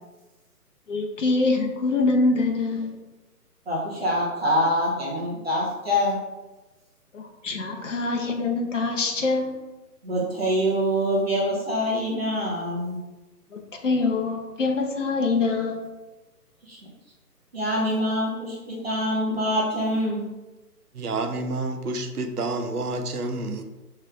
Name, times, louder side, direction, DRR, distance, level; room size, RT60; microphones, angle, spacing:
voice 1, 0.9-2.9 7.1-9.5 13.5-15.9, left 3 dB, 50° left, 2 dB, 0.7 m, -24 dB
voice 2, 3.7-6.2 10.0-13.0 16.6-16.8 17.5-20.2, equal, 40° right, -5 dB, 0.9 m, -25 dB
voice 3, 20.9-23.6, right 2 dB, 65° right, 6 dB, 0.7 m, -29 dB
6.1 x 3.2 x 2.4 m, 1.1 s
figure-of-eight pair, 140°, 48 cm